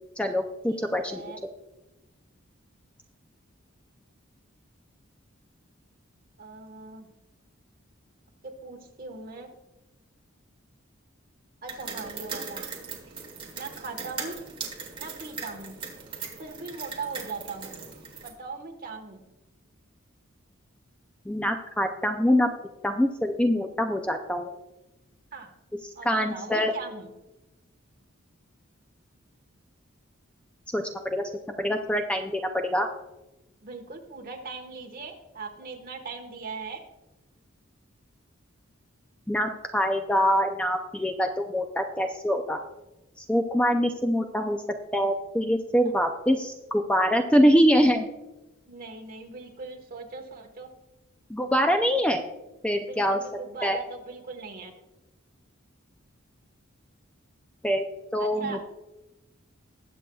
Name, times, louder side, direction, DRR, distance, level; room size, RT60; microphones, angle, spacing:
voice 1, 0.2-1.2 21.3-22.5 22.8-24.5 26.1-26.7 30.7-30.8 31.1-31.2 31.6-32.9 39.3-42.6 43.2-44.6 44.9-48.1 51.3-52.2 52.6-53.2 53.6-53.8 57.6-57.9 58.1-58.7, equal, 5° left, 5 dB, 0.4 m, -24 dB
voice 2, 0.7-1.4 6.4-7.1 8.4-9.5 11.6-12.7 13.5-14.4 15.0-15.8 16.4-17.7 18.2-19.2 25.3-25.5 25.9-27.1 33.6-36.8 45.8-45.9 48.7-50.7 52.8-54.7 58.2-58.7, right 4 dB, 45° right, 3 dB, 1.4 m, -39 dB
sound 1, 11.7-18.3, right 5 dB, 25° right, 1.7 m, -39 dB
20.0 x 7.6 x 2.3 m, 1.0 s
head